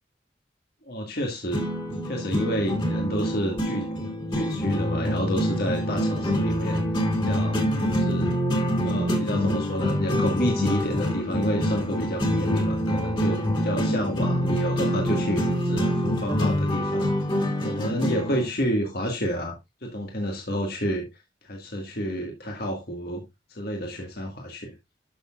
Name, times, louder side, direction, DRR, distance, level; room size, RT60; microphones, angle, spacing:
voice 1, 0.8-1.6 2.0-3.9 4.3-6.8 7.2-7.6 7.9-8.4 8.8-17.1 17.6-21.1 21.4-23.2 23.5-24.7, equal, 60° left, 1.8 m, -29 dB
sound 1, 1.5-18.5, equal, 25° left, 2.5 m, -25 dB
12.0 x 6.5 x 2.4 m
head